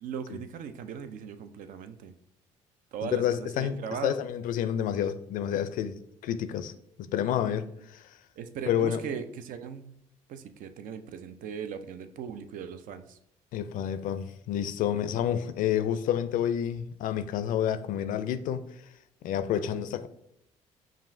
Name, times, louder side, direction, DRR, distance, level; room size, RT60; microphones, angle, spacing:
voice 1, 0.0-2.1 2.9-4.2 7.4-7.6 8.4-9.9 10.3-13.2 15.0-15.2 19.5-19.8, right 7 dB, 60° right, 0.4 m, -39 dB
voice 2, 3.1-6.7 7.1-8.0 8.7-9.0 13.5-18.6 19.2-20.1, left 10 dB, 60° left, 0.4 m, -29 dB
5.4 x 2.5 x 2.6 m
hypercardioid pair, 55°, 15 cm